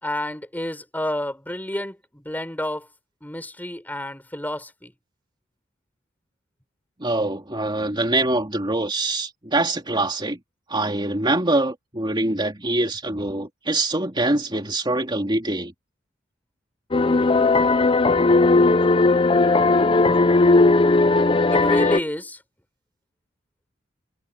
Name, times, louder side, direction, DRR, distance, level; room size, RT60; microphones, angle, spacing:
voice 1, 0.0-2.9 3.2-4.9 21.5-22.4, left 1 dB, 10° left, 5.4 m, -29 dB
voice 2, 7.0-10.4 10.7-15.7, right 2 dB, 25° right, 2.9 m, -24 dB
sound 1, 16.9-22.0, left 3 dB, 25° left, 0.7 m, -17 dB
head